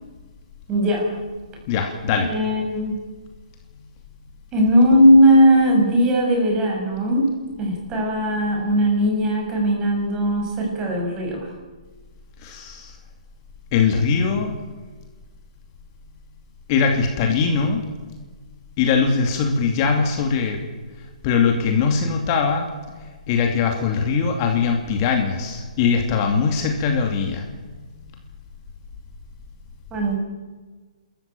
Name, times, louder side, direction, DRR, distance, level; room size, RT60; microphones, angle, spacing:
voice 1, 0.7-1.1 2.1-3.0 4.5-7.3 7.6-11.5 29.9-30.2, equal, 20° right, 0 dB, 6.7 m, -18 dB
voice 2, 1.7-2.3 12.4-12.9 13.7-14.5 16.7-17.8 18.8-20.6 21.2-22.7 23.3-27.6, left 5 dB, 30° left, 3 dB, 2.6 m, -21 dB
28.5 x 14.0 x 9.1 m, 1.4 s
hypercardioid pair, 150°, 4 cm